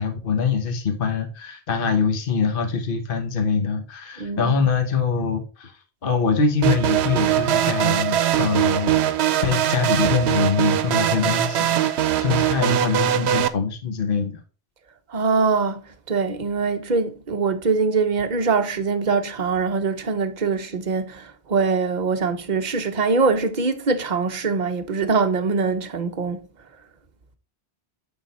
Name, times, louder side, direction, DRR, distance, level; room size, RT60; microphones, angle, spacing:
voice 1, 0.0-14.4, left 5 dB, 60° left, 1.2 m, -24 dB
voice 2, 4.2-4.5 15.1-26.4, right 4 dB, 45° right, 0.9 m, -23 dB
sound 1, 6.6-13.5, right 11 dB, 85° right, 0.9 m, -21 dB
9.2 x 4.0 x 4.1 m
omnidirectional pair, 1.1 m